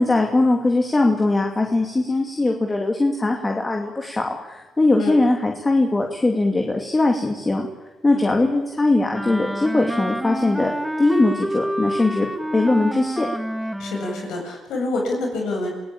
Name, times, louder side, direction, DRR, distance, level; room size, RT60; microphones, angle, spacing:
voice 1, 0.0-7.7 8.0-10.7 11.0-13.3, left 2 dB, 20° left, 2 dB, 2.7 m, -20 dB
Wind instrument woodwind instrument, 9.1-14.3, equal, ahead, 1.6 m, -28 dB
voice 2, 13.8-15.7, left 2 dB, 85° left, 2 dB, 8.0 m, -27 dB
28.0 x 17.0 x 8.8 m, 1.2 s
cardioid pair, 90°, 0 cm